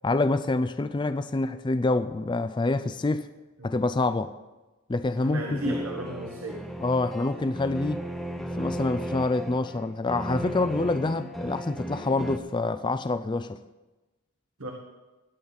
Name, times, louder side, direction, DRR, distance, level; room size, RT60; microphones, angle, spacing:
voice 1, 0.0-3.3 3.6-4.3 4.9-5.8 6.8-8.1 8.6-13.6, left 2 dB, 20° left, 0.4 m, -26 dB
voice 2, 5.2-6.7 14.6-14.7, right 1 dB, 70° right, 1.4 m, -34 dB
sound 1, 5.5-12.4, right 1 dB, ahead, 0.8 m, -36 dB
18.0 x 10.5 x 4.0 m
head